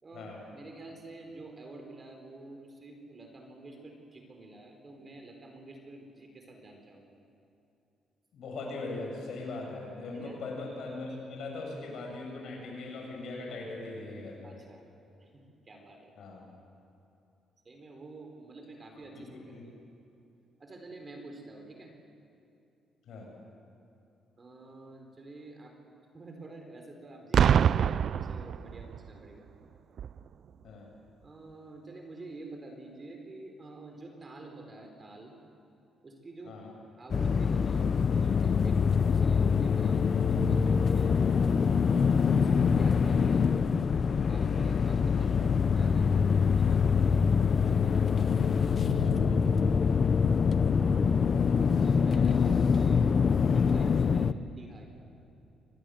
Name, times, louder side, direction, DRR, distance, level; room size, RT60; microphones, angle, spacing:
voice 1, 0.0-7.2 10.1-10.4 14.4-14.8 15.2-16.1 17.6-19.7 20.6-21.9 24.4-25.8 26.1-29.5 31.2-35.3 36.0-36.5 37.0-41.1 42.1-43.5 44.3-45.5 45.7-46.8 47.5-48.0 49.9-53.1 53.5-54.3 54.6-54.8, right 2 dB, 35° right, 3 dB, 4.3 m, -48 dB
voice 2, 8.3-14.5 16.2-16.4 19.2-19.6 23.1-23.3 30.6-30.9 36.5-36.7 41.9-42.1 45.2-45.3 48.2-48.5 49.0-49.5, left 3 dB, 70° left, 0 dB, 7.8 m, -40 dB
Boom, 27.3-29.1 30.0-30.2, right 8 dB, 60° right, 0.4 m, -25 dB
sound 1, 37.1-54.3, left 6 dB, 45° left, 0.7 m, -25 dB
25.0 x 19.5 x 7.9 m, 2.8 s
cardioid pair, 90°, 0 cm